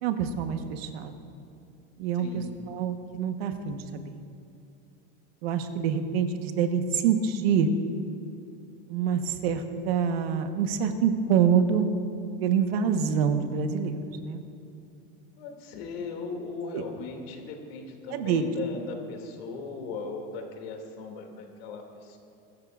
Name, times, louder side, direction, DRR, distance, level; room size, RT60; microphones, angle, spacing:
voice 1, 0.0-1.2 2.0-4.2 5.4-7.7 8.9-11.9 12.4-14.4 16.7-16.8 18.1-18.4, right 7 dB, 85° right, 7 dB, 1.3 m, -26 dB
voice 2, 2.1-2.5 15.4-22.2, left 4 dB, 80° left, 2 dB, 2.6 m, -38 dB
22.5 x 13.5 x 2.5 m, 2.6 s
supercardioid pair, 170°, 30 cm